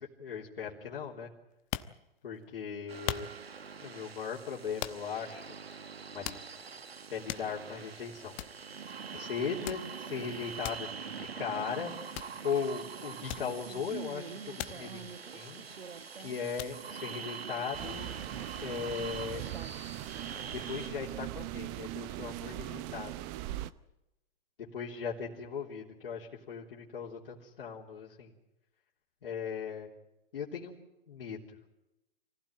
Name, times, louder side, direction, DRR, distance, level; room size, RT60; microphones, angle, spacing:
voice 1, 0.2-1.3 2.2-3.3 3.8-5.6 6.1-6.4 7.1-8.4 9.1-11.9 12.4-15.1 15.3-15.6 16.2-18.1 18.6-19.5 20.5-23.1 24.7-28.3 29.2-29.9 30.3-30.8 31.1-31.6, left 6 dB, 65° left, -4 dB, 3.6 m, -38 dB
sound 1, 1.5-2.4 3.1-3.6 4.8-5.3 5.7-5.8 6.2-6.8 7.1-7.8 8.1-8.2 8.4-8.6 9.6-10.0 10.6-10.9 12.1-12.4 13.3-13.9 14.6-14.9 15.2-16.0 16.6-16.8, left 14 dB, 35° left, 1.1 m, -40 dB
sound 2, 2.9-20.9, right 6 dB, 80° right, 1.8 m, -44 dB
sound 3, 17.7-23.7, right 15 dB, 25° right, 0.7 m, -40 dB
25.0 x 15.5 x 8.9 m, 0.94 s
hypercardioid pair, 125°, 30 cm